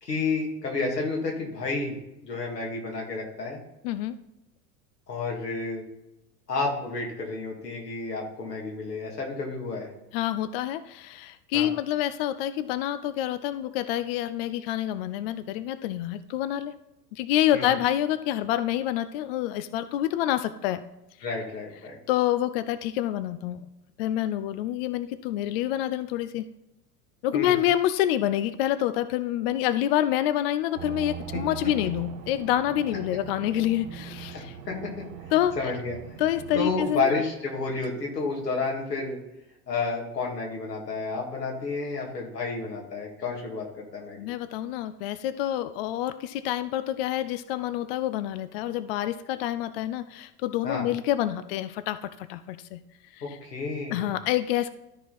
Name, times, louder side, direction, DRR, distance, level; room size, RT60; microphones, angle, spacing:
voice 1, 0.0-2.0 2.2-3.6 5.1-5.8 6.5-9.9 11.5-11.7 17.5-17.7 21.2-22.0 27.3-27.5 34.3-34.9 35.6-36.0 36.5-39.2 39.7-44.3 50.6-50.9 53.2-54.2, left 3 dB, 80° left, 0 dB, 2.3 m, -30 dB
voice 2, 3.8-4.2 10.1-16.7 17.1-20.8 22.1-23.6 24.0-26.4 27.2-34.6 35.3-35.7 36.2-37.2 44.2-52.8 53.1-53.4 53.9-54.7, left 12 dB, 40° left, 13 dB, 0.4 m, -27 dB
sound 1, 30.8-37.1 37.8-37.9, right 9 dB, 60° right, 1.1 m, -41 dB
13.0 x 4.6 x 4.1 m, 0.90 s
figure-of-eight pair, 80°, 48 cm